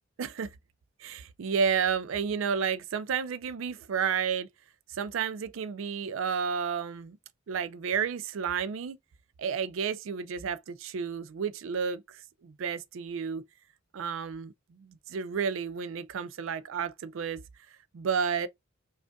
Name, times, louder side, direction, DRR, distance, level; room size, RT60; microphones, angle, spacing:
voice 1, 0.2-0.5 1.0-4.5 4.9-7.2 7.5-9.0 9.4-13.4 13.9-17.4 17.9-18.5, right 6 dB, 70° right, 0.4 m, -31 dB
5.0 x 2.4 x 2.2 m
head